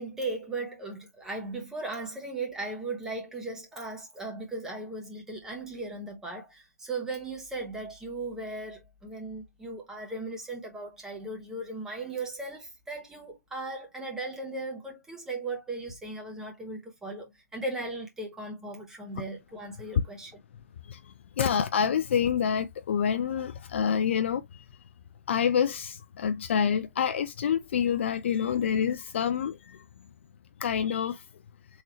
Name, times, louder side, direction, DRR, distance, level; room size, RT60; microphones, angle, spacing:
voice 1, 0.0-20.4, right 2 dB, 5° right, 0.9 m, -37 dB
voice 2, 20.9-24.6 25.3-29.8 30.6-31.2, left 8 dB, 45° left, 0.4 m, -27 dB
3.7 x 2.8 x 2.9 m
hypercardioid pair, 150°, 9 cm